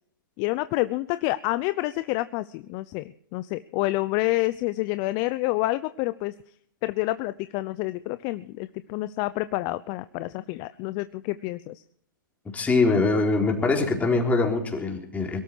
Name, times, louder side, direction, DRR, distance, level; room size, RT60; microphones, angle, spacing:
voice 1, 0.4-6.3 6.8-11.8, left 19 dB, 40° left, 14 dB, 0.7 m, -28 dB
voice 2, 12.5-15.4, left 3 dB, 15° left, 2 dB, 4.0 m, -23 dB
22.5 x 12.5 x 4.7 m, 0.65 s
hypercardioid pair, 120°, 11 cm